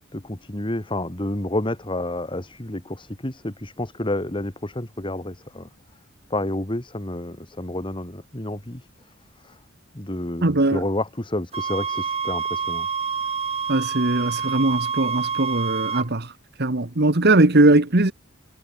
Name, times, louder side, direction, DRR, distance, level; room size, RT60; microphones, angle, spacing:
voice 1, 0.1-5.7 6.3-8.9 9.4-9.6 9.9-12.9, left 1 dB, 25° left, 2.0 m, -29 dB
voice 2, 10.4-10.8 13.7-16.3 16.6-18.1, right 2 dB, 55° right, 1.6 m, -19 dB
sound 1, 11.5-16.1, right 6 dB, 30° right, 2.4 m, -27 dB
head